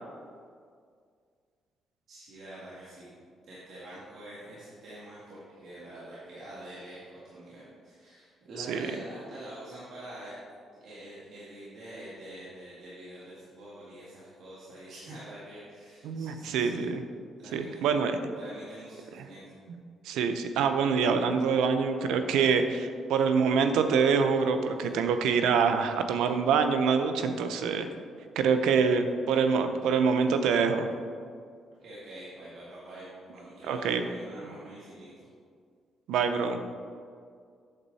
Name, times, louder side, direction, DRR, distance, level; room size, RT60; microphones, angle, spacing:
voice 1, 2.1-10.3 10.8-16.8 17.4-18.0 18.3-19.4 31.8-35.3, right 1 dB, 70° right, -9 dB, 2.3 m, -46 dB
voice 2, 16.0-17.0 17.5-18.2 19.7-19.8 20.0-27.9 28.4-30.9 33.7-34.0 36.1-36.6, right 5 dB, 90° right, 8 dB, 0.7 m, -25 dB
8.8 x 6.9 x 4.2 m, 2.1 s
cardioid pair, 90°, 0 cm